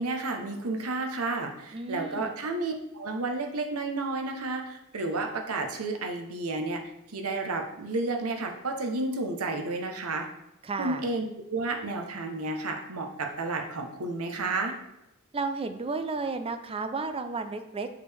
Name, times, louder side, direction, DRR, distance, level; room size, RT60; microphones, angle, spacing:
voice 1, 0.0-6.8 7.1-10.3 10.8-11.2 11.5-14.8, right 3 dB, 75° right, 3 dB, 0.9 m, -31 dB
voice 2, 1.7-2.3 10.6-11.0 15.3-17.9, right 3 dB, 25° right, 8 dB, 0.4 m, -32 dB
6.6 x 5.0 x 3.4 m, 0.88 s
head